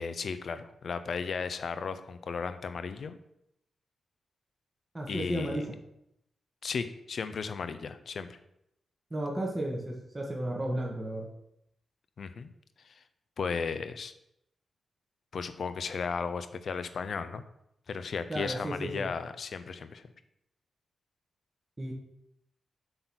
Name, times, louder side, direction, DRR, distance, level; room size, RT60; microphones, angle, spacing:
voice 1, 0.0-3.2 5.1-5.6 6.6-8.4 12.2-12.5 12.8-13.0 13.4-14.1 15.3-17.4 17.9-20.0, left 5 dB, 60° left, 11 dB, 0.7 m, -35 dB
voice 2, 4.9-5.6 9.1-11.3 18.3-19.0 21.8-21.9, right 1 dB, 20° right, -1 dB, 1.6 m, -33 dB
7.9 x 4.0 x 6.1 m, 0.80 s
cardioid pair, 100°, 0 cm